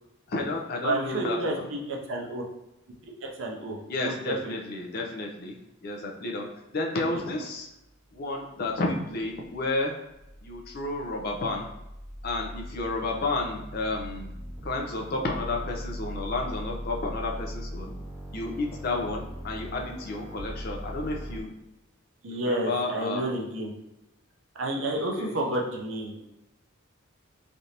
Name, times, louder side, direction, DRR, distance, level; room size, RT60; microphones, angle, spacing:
voice 1, 0.3-1.7 3.9-5.5 5.8-7.7 8.1-9.9 10.4-11.7 12.2-14.3 14.6-17.9 18.3-21.5 22.3-23.3 24.9-25.4, left 2 dB, 50° left, 0 dB, 0.5 m, -31 dB
voice 2, 0.8-2.4 3.0-4.6 7.1-7.3 22.2-23.7 24.6-26.2, right 1 dB, 65° right, 0 dB, 0.6 m, -31 dB
sound 1, 8.1-21.4, equal, 15° right, 0.6 m, -40 dB
3.3 x 2.5 x 2.8 m, 0.91 s
head